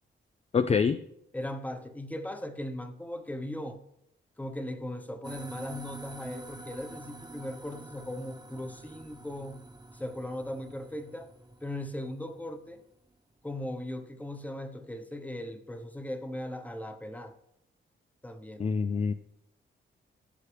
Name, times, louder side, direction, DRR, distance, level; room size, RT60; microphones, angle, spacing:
voice 1, 0.5-1.0 18.6-19.1, left 5 dB, 30° left, 10 dB, 0.4 m, -25 dB
voice 2, 1.3-3.8 4.4-9.6 9.9-11.3 11.6-12.8 13.4-17.3 18.2-18.7, left 1 dB, 5° left, 7 dB, 0.9 m, -38 dB
sound 1, 5.2-12.9, right 2 dB, 20° right, 1.0 m, -47 dB
14.5 x 6.6 x 3.3 m, 0.77 s
wide cardioid pair, 120°, 21 cm